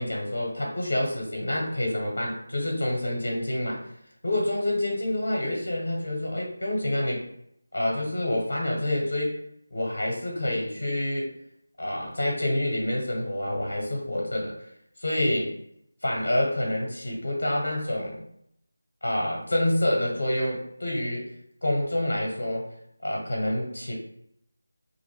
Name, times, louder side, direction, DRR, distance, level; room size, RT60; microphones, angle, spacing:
voice 1, 0.0-3.8 4.2-7.3 7.7-9.4 9.7-11.3 11.8-14.5 15.0-15.5 16.0-18.2 19.0-21.2 21.6-22.7 23.0-23.9, left 1 dB, 65° left, -1 dB, 0.8 m, -27 dB
2.5 x 2.1 x 3.2 m, 0.72 s
figure-of-eight pair, 165°, 0 cm